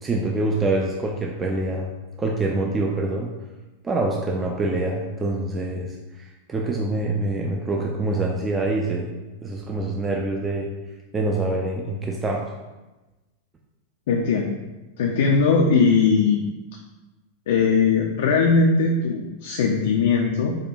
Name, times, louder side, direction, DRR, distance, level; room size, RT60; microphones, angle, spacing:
voice 1, 0.0-1.9 2.2-3.3 3.8-9.1 9.4-10.7 11.1-12.5, right 2 dB, 20° right, 0 dB, 0.4 m, -25 dB
voice 2, 14.1-14.5 15.0-16.5 17.5-20.6, left 5 dB, 55° left, 0 dB, 0.3 m, -19 dB
4.8 x 2.1 x 2.6 m, 1.1 s
figure-of-eight pair, 90°, 0 cm